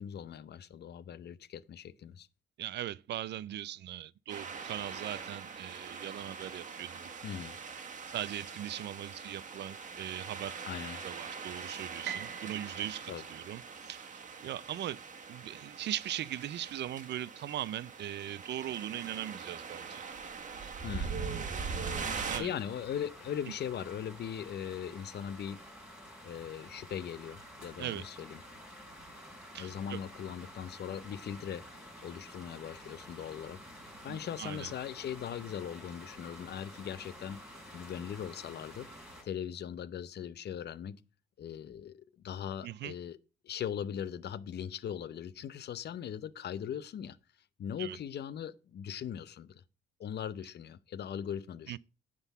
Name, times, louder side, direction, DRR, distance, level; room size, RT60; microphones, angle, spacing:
voice 1, 0.0-2.3 7.2-7.6 10.6-11.0 13.1-13.2 20.8-21.2 22.2-25.6 26.2-28.4 29.5-31.7 32.0-38.9 39.2-41.0 41.4-43.2 43.4-47.2 47.6-49.6 50.0-51.8, left 9 dB, 55° left, 0.7 m, -40 dB
voice 2, 2.6-7.0 8.1-10.6 11.0-14.1 14.4-15.0 15.3-20.0 22.0-22.5 27.8-28.1 29.5-30.0 34.1-34.7 42.6-42.9 47.8-48.0 51.7-51.8, right 12 dB, 60° right, 0.4 m, -40 dB
sound 1, 4.3-22.4, right 5 dB, 40° right, 1.4 m, -42 dB
Piano, 12.0-14.3, right 9 dB, 85° right, 1.0 m, -45 dB
sound 2, 21.8-39.2, equal, 5° right, 5.1 m, -50 dB
9.7 x 3.8 x 7.1 m
cardioid pair, 90°, 20 cm